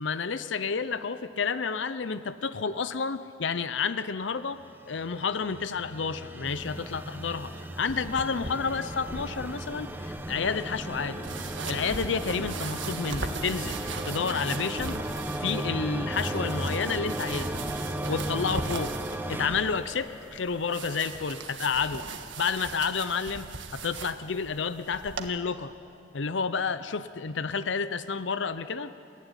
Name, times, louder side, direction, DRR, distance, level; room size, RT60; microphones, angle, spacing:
voice 1, 0.0-7.5 7.8-11.3 11.7-13.8 14.0-15.0 15.4-17.6 18.1-18.9 19.3-22.0 22.4-23.5 23.7-25.7 26.1-28.9, left 5 dB, 70° left, 13 dB, 0.6 m, -30 dB
sound 1, 4.6-20.7, right 1 dB, 10° right, 0.9 m, -35 dB
sound 2, 6.5-25.3, right 4 dB, 70° right, 1.7 m, -40 dB
30.0 x 15.5 x 9.8 m, 2.7 s
head